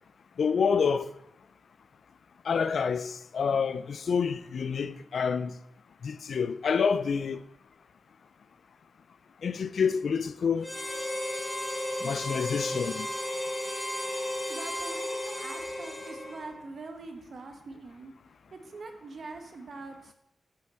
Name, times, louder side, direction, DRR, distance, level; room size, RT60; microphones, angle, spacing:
voice 1, 0.4-1.1 2.5-5.5 6.0-7.4 9.4-10.7 12.0-13.1, left 6 dB, 70° left, 0.4 m, -28 dB
Harmonica, 10.6-16.6, left 1 dB, 20° left, 2.0 m, -34 dB
voice 2, 14.5-18.1 18.5-20.1, right 3 dB, 55° right, 1.0 m, -43 dB
7.1 x 6.0 x 4.4 m
wide cardioid pair, 165°, 0 cm